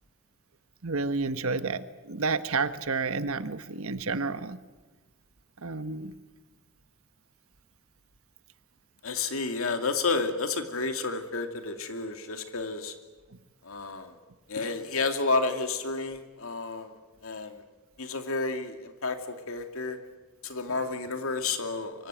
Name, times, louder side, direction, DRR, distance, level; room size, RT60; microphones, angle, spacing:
voice 1, 0.8-4.6 5.6-6.1, right 4 dB, 70° right, 11 dB, 1.3 m, -30 dB
voice 2, 9.0-12.9 13.6-14.1 14.5-16.9 17.2-17.6 18.0-20.0 20.4-22.1, left 3 dB, 70° left, 6 dB, 2.5 m, -31 dB
24.5 x 24.0 x 9.1 m, 1.2 s
head